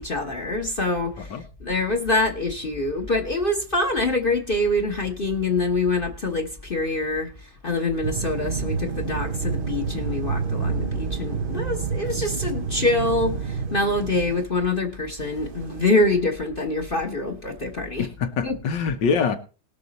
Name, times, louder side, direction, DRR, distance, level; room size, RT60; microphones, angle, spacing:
voice 1, 0.0-1.3 1.6-7.3 7.6-18.1 18.4-18.6, left 2 dB, 35° left, 1.2 m, -25 dB
sound 1, 8.0-14.4 15.2-15.8, right 5 dB, 50° right, 0.7 m, -29 dB
voice 2, 18.0-19.4, left 5 dB, 85° left, 1.8 m, -24 dB
19.5 x 6.6 x 4.1 m
omnidirectional pair, 1.9 m